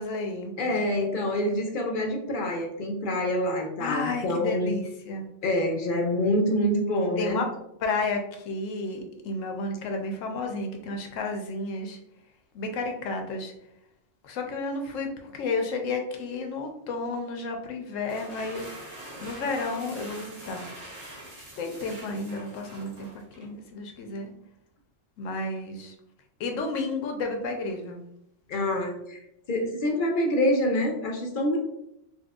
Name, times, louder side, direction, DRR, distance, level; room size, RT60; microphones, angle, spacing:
voice 1, 0.0-0.5 3.8-5.3 7.2-7.5 7.8-12.0 12.5-13.5 14.2-18.7 19.2-20.7 21.6-23.1 23.4-24.3 25.2-26.0 26.4-28.0, left 3 dB, 90° left, 3 dB, 1.0 m, -32 dB
voice 2, 0.6-4.8 5.4-7.4 28.5-29.2 29.5-31.6, left 1 dB, 55° left, 2 dB, 0.5 m, -26 dB
sound 1, 17.9-23.5, right 1 dB, 35° right, 0.8 m, -44 dB
4.3 x 2.3 x 2.3 m, 0.77 s
omnidirectional pair, 1.3 m